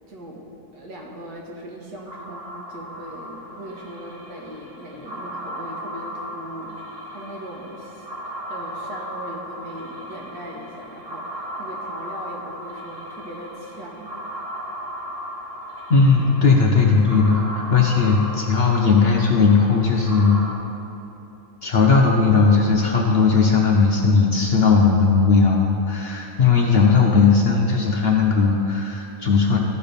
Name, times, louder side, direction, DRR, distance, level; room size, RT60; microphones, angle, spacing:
voice 1, 0.1-0.5 0.7-6.8 7.1-8.0 8.5-14.1, right 1 dB, 85° right, -2 dB, 1.9 m, -39 dB
sound 1, 2.1-20.5, equal, 30° right, 1.3 m, -36 dB
voice 2, 15.9-20.4 21.6-29.6, left 4 dB, 55° left, 0 dB, 0.7 m, -17 dB
13.5 x 4.6 x 5.1 m, 3.0 s
omnidirectional pair, 1.7 m